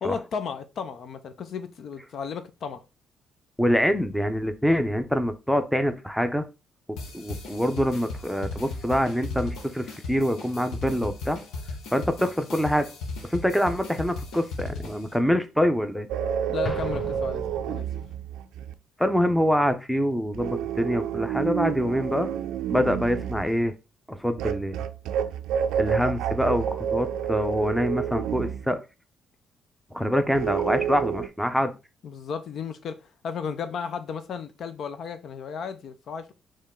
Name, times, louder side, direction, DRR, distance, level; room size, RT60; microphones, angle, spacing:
voice 1, 0.0-2.8 16.5-17.9 32.0-33.0 33.2-36.3, left 6 dB, 65° left, 0.6 m, -34 dB
voice 2, 3.6-6.5 7.1-11.4 11.9-12.9 13.3-16.1 19.0-22.3 22.7-23.7 24.1-24.8 25.8-28.8 29.9-31.7, equal, ahead, 0.7 m, -25 dB
sound 1, 7.0-15.1, left 3 dB, 85° left, 1.2 m, -37 dB
sound 2, 16.1-18.7 20.3-23.6 24.4-28.7 30.3-31.3, right 9 dB, 90° right, 0.4 m, -29 dB
Explosion, 16.6-18.3, left 2 dB, 30° left, 1.4 m, -37 dB
4.4 x 3.1 x 3.7 m
cardioid pair, 90°, 0 cm